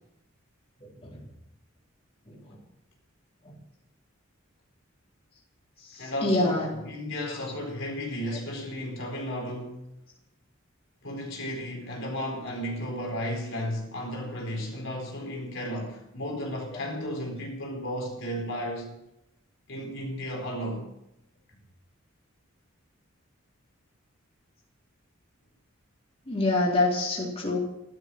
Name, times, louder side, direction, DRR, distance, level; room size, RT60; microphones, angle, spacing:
voice 1, 0.8-1.2 2.3-2.6 3.4-3.5 5.8-6.7 7.3-7.4 16.7-16.8 26.3-27.6, left 2 dB, 30° left, 3.8 m, -27 dB
voice 2, 6.0-9.8 11.0-19.0 19.7-20.9, equal, 65° left, 4.4 m, -34 dB
15.0 x 12.5 x 6.2 m
head